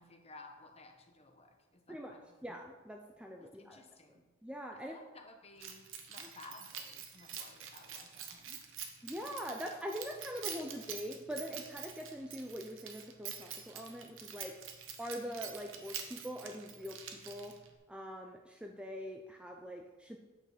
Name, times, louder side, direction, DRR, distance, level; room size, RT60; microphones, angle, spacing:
voice 1, 0.0-2.4 3.4-4.2 4.7-8.6, left 2 dB, 30° left, 4 dB, 1.0 m, -56 dB
voice 2, 2.4-3.8 4.4-4.9 9.0-14.5 15.0-17.5 17.9-20.2, equal, 5° right, 2 dB, 0.5 m, -43 dB
Keys jangling, 5.6-17.7, right 8 dB, 65° right, 1.1 m, -46 dB
9.0 x 6.7 x 5.0 m, 1.2 s
head